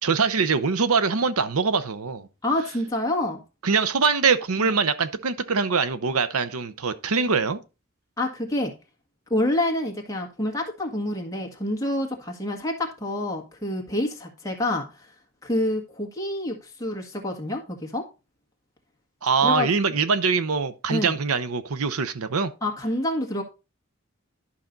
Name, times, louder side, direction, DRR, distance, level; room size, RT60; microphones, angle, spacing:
voice 1, 0.0-2.3 3.6-7.6 19.2-22.5, right 5 dB, 85° right, 0.8 m, -23 dB
voice 2, 2.4-3.4 8.2-8.7 9.3-15.1 15.4-18.0 19.4-19.7 20.9-21.2 22.6-23.4, left 1 dB, 15° left, 1.6 m, -27 dB
11.0 x 5.8 x 3.9 m
head